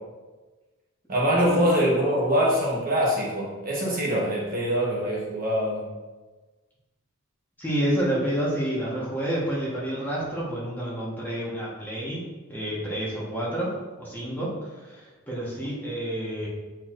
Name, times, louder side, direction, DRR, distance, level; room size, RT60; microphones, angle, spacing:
voice 1, 1.1-5.9, equal, 40° right, -4 dB, 1.2 m, -24 dB
voice 2, 7.6-13.7 14.0-14.6 14.8-16.5, right 1 dB, 10° left, -7 dB, 1.3 m, -29 dB
8.1 x 4.5 x 2.6 m, 1.3 s
head